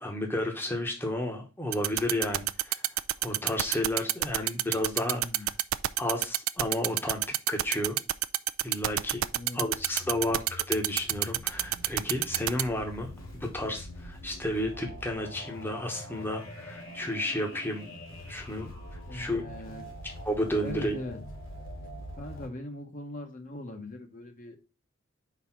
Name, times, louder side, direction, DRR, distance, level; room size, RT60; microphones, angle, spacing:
voice 1, 0.0-2.9 3.2-5.5 6.0-7.2 7.5-8.0 8.6-9.2 9.5-17.9 18.3-18.7 19.1-19.4 20.2-20.9, left 1 dB, 10° left, 3 dB, 1.0 m, -32 dB
sound 1, 1.7-12.6, right 15 dB, 80° right, 0.4 m, -26 dB
voice 2, 5.0-5.5 9.3-9.6 10.0-10.2 19.1-19.9 20.6-21.2 22.2-24.6, left 1 dB, 40° left, 4 dB, 1.1 m, -40 dB
sound 2, 9.6-22.5, left 1 dB, 90° left, 2.4 m, -44 dB
5.0 x 4.1 x 5.7 m, 0.31 s
head